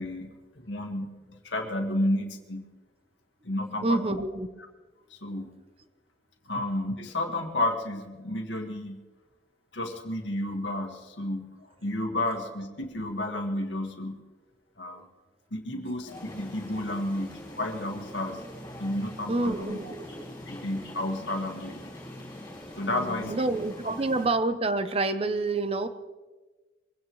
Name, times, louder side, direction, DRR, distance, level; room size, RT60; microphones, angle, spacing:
voice 1, 0.0-2.6 3.4-4.1 5.1-5.5 6.5-9.0 9.7-14.2 14.8-15.1 15.5-18.4 18.8-19.9 20.5-21.8 22.8-23.3, left 1 dB, 75° left, 3 dB, 1.8 m, -31 dB
voice 2, 3.8-4.5 14.9-15.0 19.3-20.2 22.9-25.9, right 2 dB, 30° right, 11 dB, 0.7 m, -28 dB
sound 1, 16.1-24.3, left 1 dB, 20° left, 5.8 m, -43 dB
22.5 x 16.5 x 3.1 m, 1.3 s
head